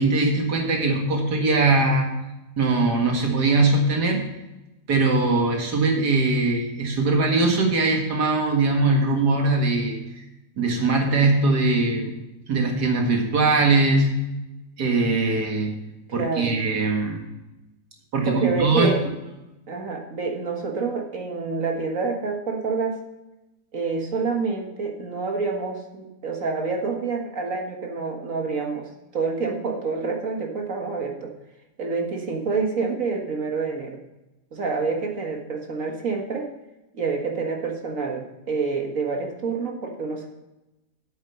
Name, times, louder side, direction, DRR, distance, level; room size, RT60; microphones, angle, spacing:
voice 1, 0.0-2.1 2.6-4.2 4.9-10.0 10.6-12.1 12.5-14.2 14.8-15.7 16.1-17.2 18.1-18.9, right 3 dB, 90° right, 1 dB, 2.3 m, -21 dB
voice 2, 16.2-16.6 18.3-19.0 19.7-23.0 23.7-31.3 31.8-34.0 34.5-36.5 36.9-40.3, right 4 dB, 55° right, 2 dB, 1.9 m, -27 dB
8.8 x 8.1 x 5.7 m, 0.97 s
omnidirectional pair, 1.7 m